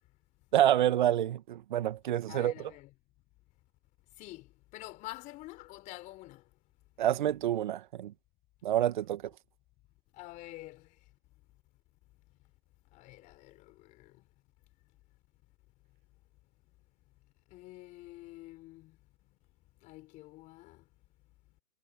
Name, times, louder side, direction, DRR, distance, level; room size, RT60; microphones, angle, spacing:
voice 1, 0.5-2.7 7.0-8.1 8.6-9.3, right 12 dB, 30° right, 1.8 m, -28 dB
voice 2, 2.3-2.9 4.2-6.4 10.1-11.0 12.9-14.2 17.5-19.0 19.8-20.8, left 19 dB, 15° left, 3.6 m, -48 dB
figure-of-eight pair, 150°, 48 cm